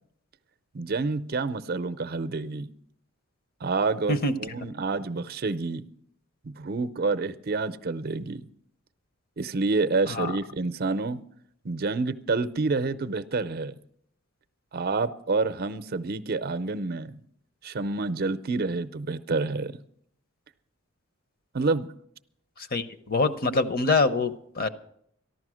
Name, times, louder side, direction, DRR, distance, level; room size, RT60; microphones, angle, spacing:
voice 1, 0.7-2.7 3.6-5.9 6.4-8.5 9.4-11.2 11.6-13.7 14.7-17.2 17.6-19.7 21.5-21.9, right 3 dB, 45° right, 12 dB, 0.6 m, -28 dB
voice 2, 22.7-24.7, left 3 dB, 45° left, 10 dB, 0.8 m, -25 dB
14.0 x 11.5 x 6.2 m, 0.70 s
head